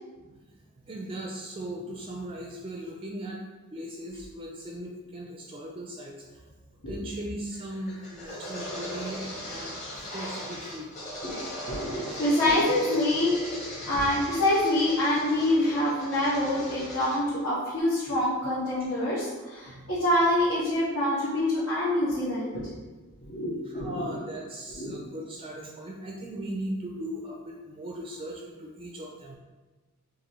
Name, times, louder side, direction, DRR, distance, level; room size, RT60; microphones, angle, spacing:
voice 1, 0.8-3.4 3.7-6.5 6.9-10.9 19.6-19.9 23.7-29.4, right 1 dB, 25° right, -1 dB, 0.4 m, -38 dB
sound 1, 7.5-17.2, equal, 35° left, 1.3 m, -39 dB
voice 2, 11.7-22.6 23.3-23.5 23.7-24.1 24.8-24.9, left 1 dB, 70° left, -12 dB, 1.3 m, -26 dB
5.1 x 2.7 x 3.0 m, 1.3 s
head